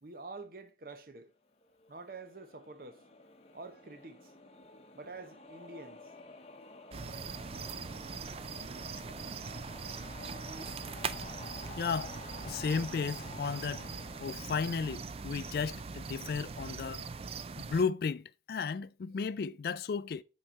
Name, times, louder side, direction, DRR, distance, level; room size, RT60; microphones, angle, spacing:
voice 1, 0.0-1.3 1.9-3.0 3.5-4.3 4.9-6.0, right 3 dB, 50° right, 0.9 m, -47 dB
sound 1, 1.6-15.9, left 2 dB, 35° left, 0.8 m, -51 dB
sound 2, 6.9-17.8, right 5 dB, 30° right, 0.3 m, -41 dB
voice 2, 11.8-12.2 12.5-13.9 14.2-17.1 17.6-20.2, left 5 dB, 55° left, 0.3 m, -34 dB
6.4 x 4.8 x 4.2 m
head